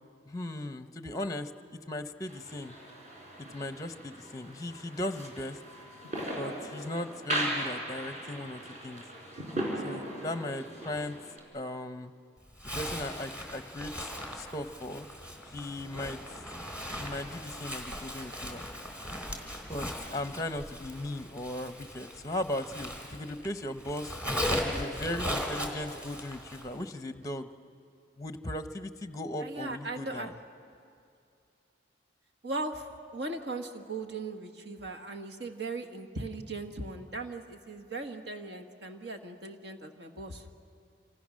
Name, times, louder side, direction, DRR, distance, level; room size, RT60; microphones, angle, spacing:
voice 1, 0.3-1.5 1.9-2.8 3.4-5.6 6.4-9.0 9.8-11.2 11.5-12.1 12.7-14.1 14.3-15.1 15.5-16.2 16.9-18.6 19.6-24.2 24.6-27.5 28.2-30.3, left 1 dB, 20° left, 9 dB, 0.8 m, -37 dB
sound 1, 2.3-11.4, right 1 dB, 40° right, 4.8 m, -38 dB
Zipper (clothing), 12.6-23.5 23.8-26.7, equal, 5° right, 2.8 m, -38 dB
voice 2, 29.4-30.3 32.4-40.5, right 2 dB, 65° right, 6 dB, 1.6 m, -38 dB
27.0 x 26.5 x 6.4 m, 2.5 s
head